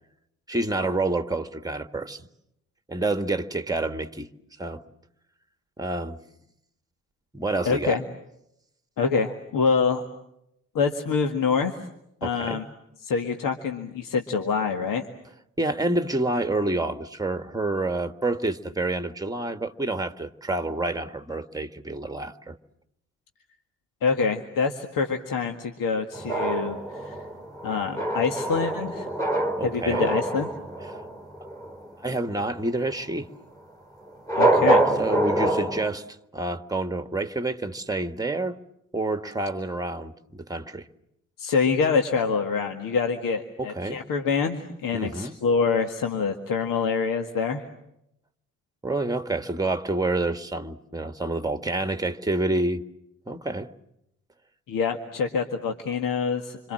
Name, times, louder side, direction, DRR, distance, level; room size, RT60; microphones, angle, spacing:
voice 1, 0.5-2.3 2.9-4.3 4.6-4.8 5.8-6.2 7.3-8.0 12.2-12.6 15.6-22.6 29.6-30.1 30.8-31.0 32.0-33.3 35.0-36.1 36.3-38.6 38.9-40.9 43.6-44.0 44.9-45.3 48.8-52.8 53.3-53.7, right 2 dB, 10° right, 1.8 m, -28 dB
voice 2, 7.7-8.0 9.0-10.1 10.7-11.7 12.2-12.6 13.0-15.1 24.0-27.2 27.6-29.1 29.6-30.5 34.4-34.8 41.4-47.6 54.7-56.7, left 5 dB, 60° left, 1.9 m, -25 dB
sound 1, 26.1-31.9 34.2-35.9, right 1 dB, 10° left, 4.0 m, -25 dB
27.0 x 26.5 x 7.7 m
figure-of-eight pair, 40°, 37 cm